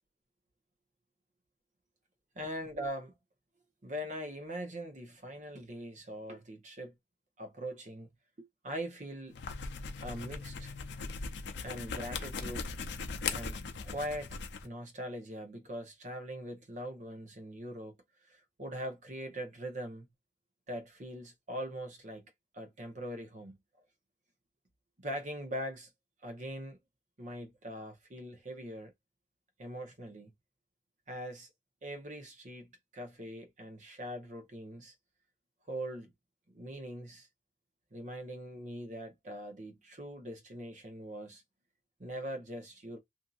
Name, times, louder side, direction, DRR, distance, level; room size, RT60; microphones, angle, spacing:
voice 1, 2.3-3.1 3.8-6.9 7.4-8.1 8.4-9.4 10.0-10.7 11.6-12.7 13.3-14.3 14.6-18.0 18.2-20.1 20.7-23.6 25.0-25.9 26.2-26.8 27.2-28.9 29.6-30.3 31.1-31.5 31.8-34.9 35.7-36.1 36.5-37.3 37.9-41.4 42.0-43.0, equal, 45° right, 0.9 m, -42 dB
sound 1, 9.3-14.7, left 4 dB, 80° left, 0.5 m, -39 dB
2.7 x 2.6 x 2.4 m
head